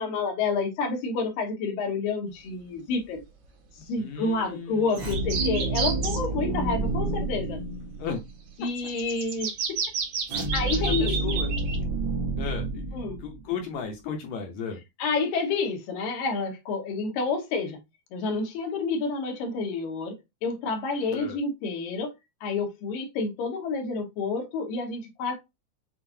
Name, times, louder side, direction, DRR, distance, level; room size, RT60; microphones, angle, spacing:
voice 1, 0.0-3.2 3.8-7.6 8.6-9.5 10.5-11.2 12.9-13.2 15.0-17.8 18.1-20.1 20.4-22.1 22.4-25.4, left 4 dB, 90° left, 2.9 m, -29 dB
voice 2, 4.0-5.1 8.0-8.2 10.7-11.6 12.4-12.9 13.2-14.8 21.1-21.4, left 6 dB, 70° left, 1.8 m, -35 dB
sound 1, 4.9-8.3 10.3-13.6, right 2 dB, 45° right, 1.4 m, -29 dB
sound 2, 4.9-6.2 8.7-11.8, right 6 dB, 80° right, 3.0 m, -31 dB
7.4 x 2.5 x 2.7 m
omnidirectional pair, 3.8 m